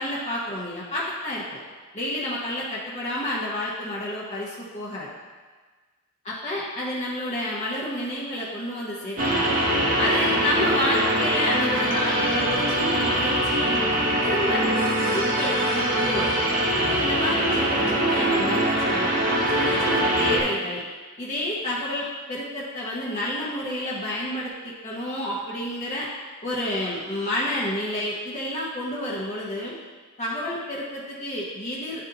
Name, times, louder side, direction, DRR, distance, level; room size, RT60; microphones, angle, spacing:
voice 1, 0.0-1.6 1.9-5.1 6.2-9.4 9.9-13.8 14.2-14.6 15.0-16.3 16.9-19.1 19.5-20.8 21.2-26.1 26.4-29.7 30.2-32.0, left 1 dB, 30° left, -6 dB, 0.9 m, -29 dB
sound 1, 9.2-20.4, right 1 dB, 40° right, 1.0 m, -23 dB
11.5 x 4.0 x 2.8 m, 1.4 s
head